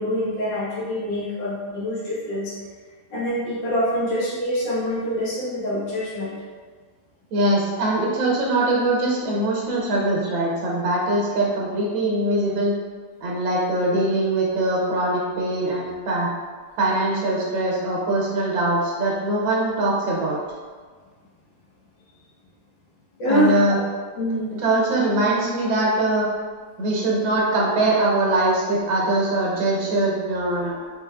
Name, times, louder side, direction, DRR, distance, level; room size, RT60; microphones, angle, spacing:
voice 1, 0.0-2.5 3.1-6.3 23.2-23.8 24.2-24.5, equal, 70° left, -7 dB, 1.6 m, -25 dB
voice 2, 7.3-12.7 13.2-16.3 16.8-20.4 23.2-23.8 24.5-26.3 26.8-30.7, right 2 dB, 80° right, -4 dB, 1.6 m, -22 dB
4.1 x 3.2 x 2.3 m, 1.5 s
omnidirectional pair, 2.1 m